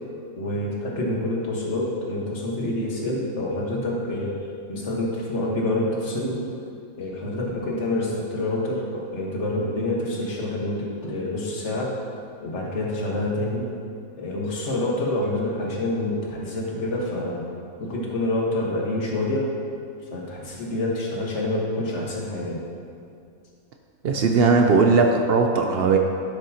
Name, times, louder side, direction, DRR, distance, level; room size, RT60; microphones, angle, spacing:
voice 1, 0.4-4.4 4.7-6.4 7.0-11.9 12.4-13.7 14.2-17.4 17.8-19.5 20.1-22.6, left 1 dB, 55° left, -2 dB, 1.5 m, -27 dB
voice 2, 24.0-26.0, right 4 dB, 65° right, 3 dB, 0.6 m, -18 dB
12.0 x 6.3 x 2.8 m, 2.5 s
omnidirectional pair, 1.5 m